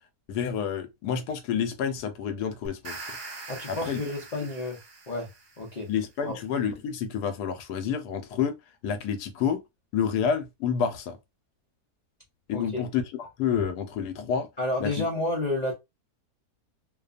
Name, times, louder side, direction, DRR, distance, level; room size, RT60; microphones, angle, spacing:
voice 1, 0.3-3.0 3.7-4.0 4.3-4.5 5.9-8.5 8.8-9.6 9.9-11.2 12.5-14.5 14.8-15.0, left 7 dB, 90° left, 1.2 m, -29 dB
sound 1, 2.7-5.8, right 3 dB, 50° right, 0.8 m, -42 dB
voice 2, 3.5-4.8 5.1-5.3 5.6-5.9 6.2-6.4 12.5-12.8 14.6-15.7, left 2 dB, 60° left, 0.4 m, -30 dB
2.7 x 2.2 x 2.4 m
omnidirectional pair, 1.7 m